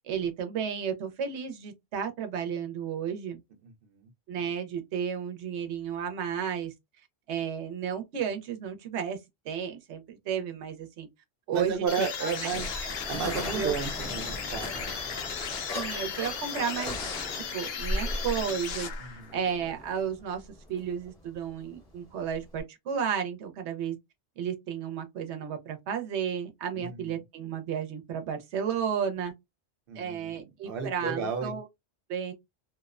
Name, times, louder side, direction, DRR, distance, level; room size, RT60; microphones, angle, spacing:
voice 1, 0.0-3.4 4.3-6.7 7.3-9.2 9.4-11.1 11.5-12.1 12.8-12.9 13.5-13.7 15.7-17.0 17.3-20.4 20.7-24.0 24.4-29.3 30.0-31.6 32.1-32.3, right 7 dB, 85° right, 0.9 m, -33 dB
voice 2, 3.6-4.1 11.5-12.7 13.1-14.7 19.0-19.3 26.7-27.1 29.9-30.4 30.6-31.6, right 6 dB, 60° right, 0.8 m, -33 dB
sound 1, 11.9-19.4, left 6 dB, 70° left, 0.8 m, -36 dB
sound 2, 12.1-22.6, left 1 dB, 25° left, 0.7 m, -38 dB
2.8 x 2.0 x 2.3 m
omnidirectional pair, 1.1 m